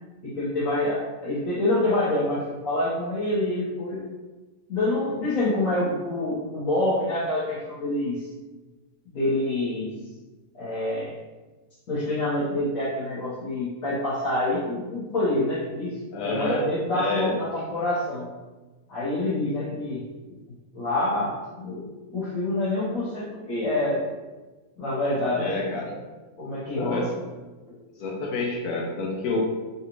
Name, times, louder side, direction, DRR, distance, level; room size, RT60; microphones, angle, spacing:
voice 1, 0.2-4.0 4.7-8.3 9.1-9.9 10.5-11.1 11.9-16.0 16.2-18.3 18.9-20.0 20.7-21.3 21.6-24.0 24.8-25.5 26.4-27.1 27.7-27.8, left 1 dB, 65° left, -13 dB, 1.6 m, -26 dB
voice 2, 16.1-16.6 16.9-17.4 25.3-25.9 26.7-27.1 28.0-29.4, left 3 dB, 80° left, -2 dB, 1.2 m, -28 dB
4.0 x 2.6 x 3.0 m, 1.2 s
omnidirectional pair, 1.6 m